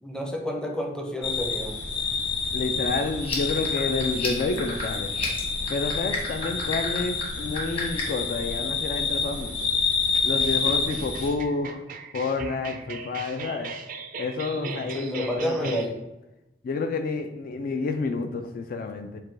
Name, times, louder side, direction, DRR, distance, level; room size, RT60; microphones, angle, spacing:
voice 1, 0.0-1.8 14.6-16.0, equal, 5° left, 1 dB, 0.5 m, -30 dB
sound 1, 1.2-11.3, left 4 dB, 75° left, 1.0 m, -28 dB
voice 2, 2.5-5.1 5.7-9.7 10.2-11.8 12.1-13.7 14.2-15.9 16.6-19.2, left 3 dB, 55° left, 7 dB, 0.3 m, -29 dB
sound 2, 3.2-8.2, left 4 dB, 35° left, 1.2 m, -34 dB
sound 3, 10.1-15.9, right 5 dB, 50° right, 0.4 m, -39 dB
4.7 x 2.3 x 4.4 m, 0.99 s
head